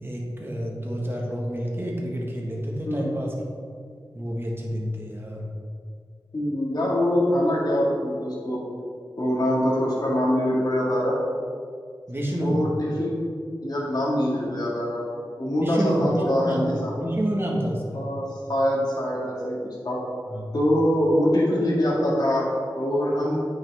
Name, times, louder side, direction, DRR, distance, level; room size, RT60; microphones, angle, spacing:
voice 1, 0.0-3.3 4.1-5.5 12.1-12.6 15.6-16.1 16.4-16.6 17.0-18.0 20.3-20.4, equal, 30° right, -2 dB, 1.6 m, -28 dB
voice 2, 6.3-8.6 9.2-11.2 12.4-13.2 13.6-15.1 15.4-16.9 17.9-19.6 19.8-20.0 20.5-22.5 22.8-23.4, equal, 55° left, -6 dB, 1.9 m, -24 dB
8.8 x 5.9 x 3.5 m, 2.2 s
wide cardioid pair, 65°, 8 cm